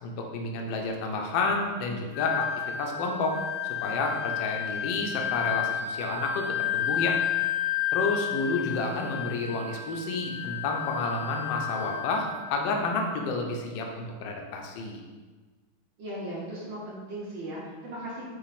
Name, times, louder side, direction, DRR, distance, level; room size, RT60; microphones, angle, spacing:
voice 1, 0.0-2.5 2.8-3.4 3.8-6.5 6.7-7.2 7.9-15.0, left 3 dB, 70° left, 2 dB, 1.2 m, -30 dB
Wind instrument woodwind instrument, 2.1-12.5, left 10 dB, 85° left, 1.5 m, -31 dB
voice 2, 16.0-18.3, right 1 dB, 65° right, -7 dB, 1.4 m, -37 dB
5.2 x 2.4 x 4.0 m, 1.4 s
omnidirectional pair, 2.4 m